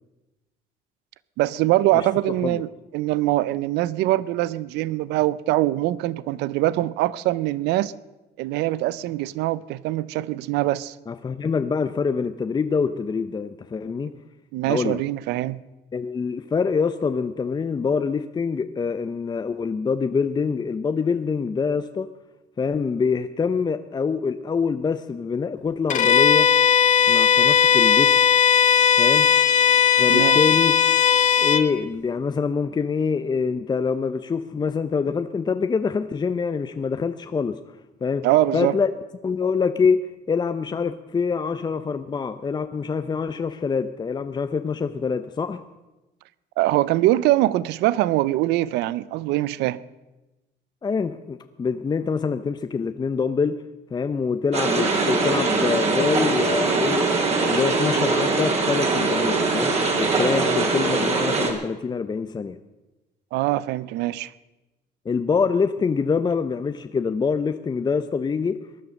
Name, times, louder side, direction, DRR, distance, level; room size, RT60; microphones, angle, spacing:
voice 1, 1.4-7.9 8.4-11.0 14.5-15.6 30.1-30.4 38.2-38.8 46.6-49.8 63.3-64.3, right 16 dB, 90° right, 0.6 m, -23 dB
voice 2, 11.1-14.1 14.6-15.0 15.9-22.1 22.6-26.5 27.1-28.2 29.0-29.3 30.0-30.8 31.4-37.6 38.0-38.3 38.5-38.9 39.2-45.6 50.8-53.6 53.9-57.0 57.4-62.6 65.1-68.6, left 5 dB, 25° left, 0.7 m, -25 dB
Bowed string instrument, 25.9-31.7, left 7 dB, 45° left, 1.4 m, -17 dB
sound 1, 54.5-61.5, right 3 dB, 40° right, 3.4 m, -22 dB
19.0 x 11.0 x 6.4 m
cardioid pair, 110°, 17 cm